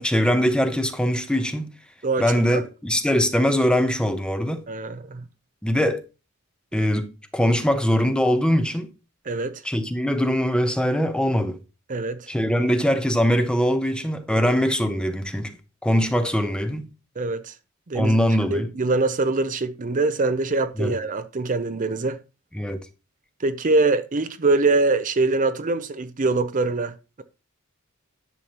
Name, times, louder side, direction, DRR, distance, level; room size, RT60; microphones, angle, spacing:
voice 1, 0.0-1.7 2.2-4.6 5.6-6.0 6.7-8.9 9.6-11.6 12.3-15.5 15.8-16.9 17.9-18.7 20.8-21.0 22.5-22.8, equal, 5° left, 0.8 m, -22 dB
voice 2, 2.0-2.6 4.7-5.2 9.3-9.6 11.9-12.3 14.4-14.5 17.2-17.5 17.9-18.2 18.5-22.2 23.4-27.2, right 3 dB, 35° right, 0.6 m, -24 dB
10.5 x 6.9 x 2.9 m
head